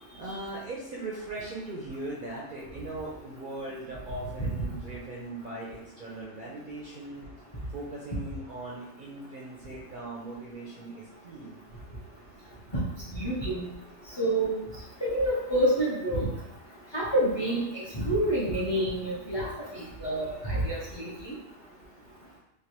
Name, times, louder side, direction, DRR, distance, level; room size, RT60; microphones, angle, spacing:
voice 1, 0.2-7.2 7.7-11.6, right 2 dB, 55° right, -5 dB, 0.5 m, -39 dB
voice 2, 13.1-13.7 14.2-14.6 15.0-16.3 16.9-19.5 19.7-21.3, right 1 dB, 30° left, -7 dB, 0.5 m, -28 dB
3.2 x 2.3 x 2.8 m, 0.85 s
omnidirectional pair, 1.3 m